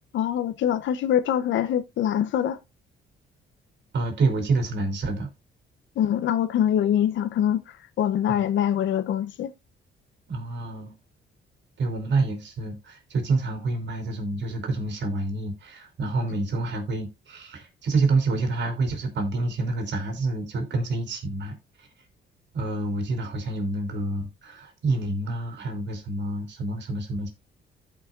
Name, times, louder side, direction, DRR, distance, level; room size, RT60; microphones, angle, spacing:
voice 1, 0.1-2.6 6.0-9.5, left 10 dB, 75° left, 0.8 m, -24 dB
voice 2, 3.9-5.3 8.3-8.4 10.3-10.9 11.8-21.9 22.5-27.3, right 3 dB, 60° right, 3.2 m, -28 dB
14.5 x 5.5 x 2.4 m
cardioid pair, 90°, 20 cm